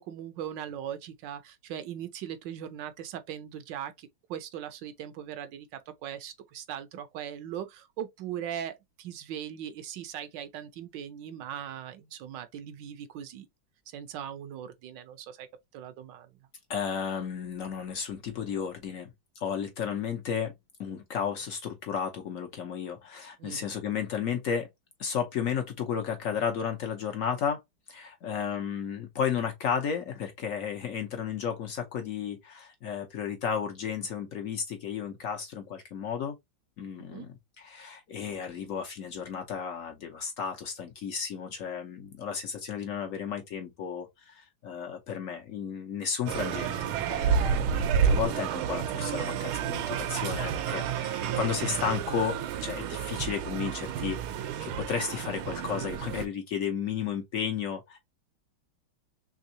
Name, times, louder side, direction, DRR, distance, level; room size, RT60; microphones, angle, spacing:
voice 1, 0.0-13.5 13.9-15.5 15.7-16.3 23.4-23.6 37.0-37.3, right 10 dB, 70° right, 1.2 m, -39 dB
voice 2, 16.7-19.1 19.4-20.5 20.8-24.7 25.0-27.6 27.9-36.4 36.8-47.7 48.0-58.0, left 7 dB, 70° left, 0.8 m, -33 dB
sound 1, 46.3-56.3, right 7 dB, 85° right, 1.5 m, -30 dB
3.6 x 3.4 x 2.6 m
omnidirectional pair, 2.2 m